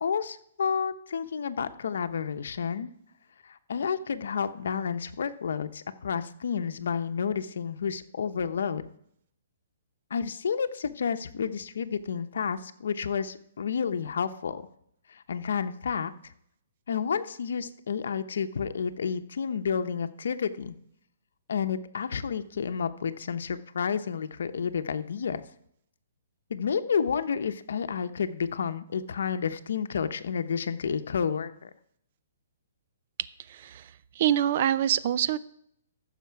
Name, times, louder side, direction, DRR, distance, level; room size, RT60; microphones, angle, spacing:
voice 1, 0.0-2.9 3.5-8.9 10.1-14.6 15.3-16.1 16.9-20.7 21.5-25.4 26.5-31.7, left 6 dB, 75° left, 9 dB, 0.8 m, -30 dB
voice 2, 33.5-33.9 34.2-35.4, right 10 dB, 45° right, 16 dB, 0.4 m, -25 dB
14.5 x 6.6 x 4.7 m, 0.70 s
hypercardioid pair, 160°, 0 cm